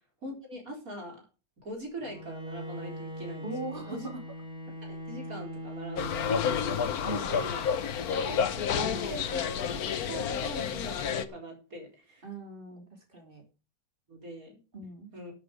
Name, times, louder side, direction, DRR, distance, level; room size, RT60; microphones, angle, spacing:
voice 1, 0.2-1.2 1.6-3.5 3.9-4.1 4.8-12.3 13.1-13.2 14.1-14.6 15.1-15.3, equal, 70° right, 2 dB, 4.6 m, -42 dB
Bowed string instrument, 2.0-7.4, equal, 5° right, 6.3 m, -41 dB
voice 2, 3.4-4.2 7.0-7.4 12.2-12.8 13.1-13.4 14.7-15.1, right 3 dB, 35° right, 4 dB, 3.3 m, -39 dB
sound 1, 6.0-11.2, left 7 dB, 80° left, 1.5 m, -30 dB
13.0 x 8.8 x 4.9 m, 0.32 s
omnidirectional pair, 1.6 m